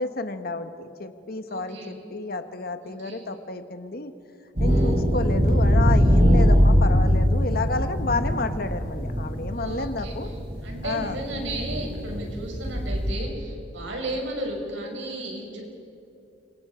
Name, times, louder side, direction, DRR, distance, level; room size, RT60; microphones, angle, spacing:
voice 1, 0.0-4.1 4.6-10.3 10.8-11.2, left 3 dB, 55° left, 9 dB, 1.1 m, -31 dB
voice 2, 1.5-2.0 3.0-3.2 4.6-5.0 9.5-10.1 10.6-15.6, right 1 dB, 85° right, 0 dB, 6.2 m, -34 dB
sound 1, 4.6-13.1, equal, 55° right, 5.3 m, -22 dB
29.5 x 25.5 x 5.0 m, 2.7 s
head